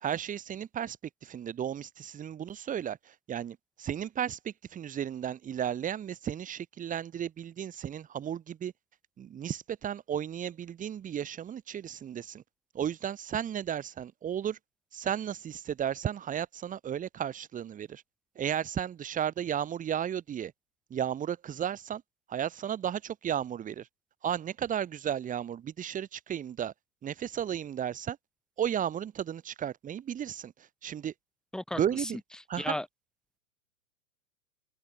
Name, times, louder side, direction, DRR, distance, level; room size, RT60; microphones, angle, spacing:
voice 1, 0.0-8.7 9.2-12.4 12.7-14.6 14.9-18.0 18.4-20.5 20.9-22.0 22.3-23.9 24.2-26.7 27.0-28.2 28.6-30.5 30.8-31.1 31.8-32.2 32.5-32.8, right 9 dB, 20° right, 2.0 m, -34 dB
voice 2, 31.5-32.1 32.6-32.9, left 1 dB, ahead, 1.6 m, -34 dB
open air
hypercardioid pair, 110°, 42 cm